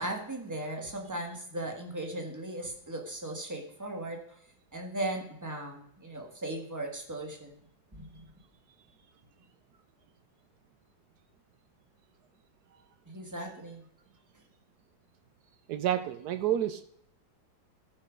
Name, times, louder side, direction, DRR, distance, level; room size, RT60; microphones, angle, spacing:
voice 1, 0.0-4.4 4.7-7.6 7.9-8.2 13.0-13.8, right 1 dB, 10° right, 1.5 m, -37 dB
voice 2, 15.7-16.8, right 11 dB, 80° right, 0.8 m, -29 dB
14.5 x 5.3 x 5.2 m
omnidirectional pair, 2.2 m